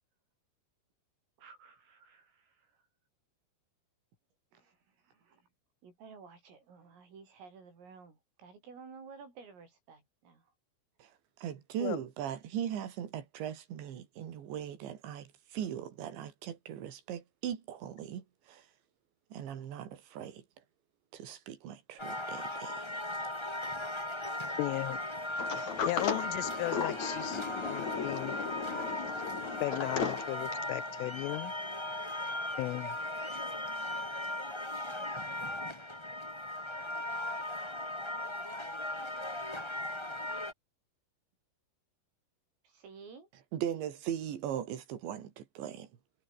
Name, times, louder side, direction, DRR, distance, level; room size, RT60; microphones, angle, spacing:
voice 1, 1.4-2.7 4.5-4.8 5.0-5.5 5.8-10.4 29.7-30.0 42.6-43.3, right 5 dB, 90° right, 10.5 m, -53 dB
voice 2, 11.4-18.7 19.3-20.4 21.1-22.9 43.5-45.9, right 10 dB, 65° right, 5.0 m, -39 dB
sound 1, 22.0-40.5, left 1 dB, 10° left, 1.8 m, -38 dB
voice 3, 24.6-25.0 25.9-27.4 27.7-28.3 29.6-31.5 32.6-33.0, left 20 dB, 85° left, 3.2 m, -35 dB
Sliding door, 25.4-30.8, left 6 dB, 40° left, 3.9 m, -36 dB
omnidirectional pair, 5.7 m